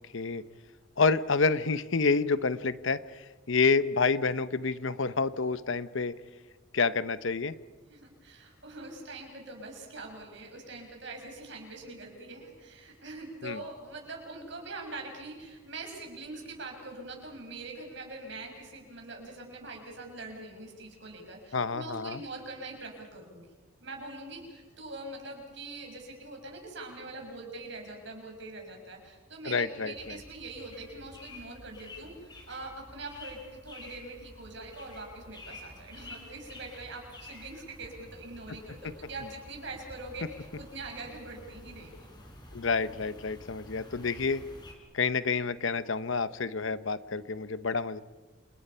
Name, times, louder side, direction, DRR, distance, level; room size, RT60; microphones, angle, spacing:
voice 1, 1.0-6.1 6.7-7.5 13.4-13.6 21.5-22.2 29.4-30.2 42.5-44.4 44.9-48.0, left 4 dB, 65° left, 14 dB, 0.8 m, -28 dB
voice 2, 7.9-23.5 23.8-42.1, right 2 dB, 55° right, 2 dB, 6.6 m, -43 dB
sound 1, 29.9-44.7, left 1 dB, 20° left, 3.9 m, -50 dB
29.0 x 28.5 x 5.6 m, 1.3 s
head